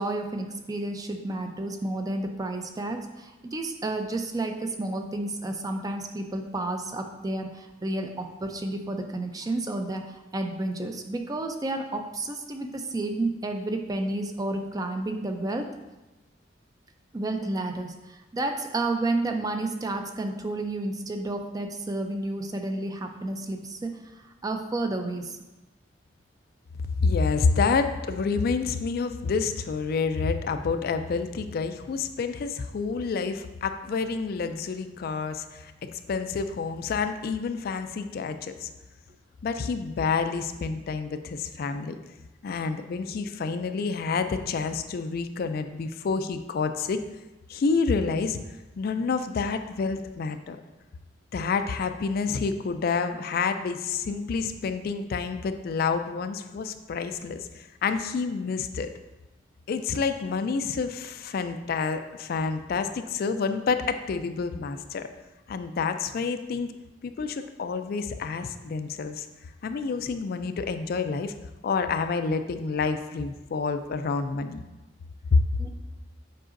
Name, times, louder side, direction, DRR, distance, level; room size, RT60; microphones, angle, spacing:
voice 1, 0.0-15.7 17.1-25.4 75.6-75.7, right 2 dB, 20° right, 5 dB, 0.4 m, -31 dB
voice 2, 27.0-38.7 39.4-42.0 42.4-47.0 47.5-48.4 48.8-50.6 51.3-58.9 59.7-65.1 65.5-66.7 67.0-69.3 69.6-71.3 71.6-74.6 75.3-75.4, left 4 dB, 55° left, 9 dB, 0.3 m, -28 dB
7.6 x 4.8 x 2.5 m, 1.1 s
head